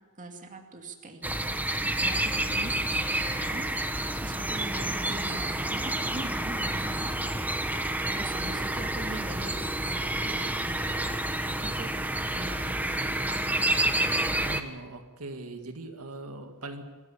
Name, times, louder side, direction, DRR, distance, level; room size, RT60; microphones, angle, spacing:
voice 1, 0.2-2.7 3.2-3.7 4.1-9.6 9.8-11.9 12.3-13.2 13.7-13.8, right 2 dB, 35° right, 4 dB, 2.5 m, -42 dB
sound 1, 1.2-14.6, right 1 dB, 10° right, 1.2 m, -29 dB
voice 2, 14.4-16.8, right 2 dB, 80° right, 5 dB, 2.1 m, -40 dB
25.5 x 14.5 x 8.6 m, 1.4 s
head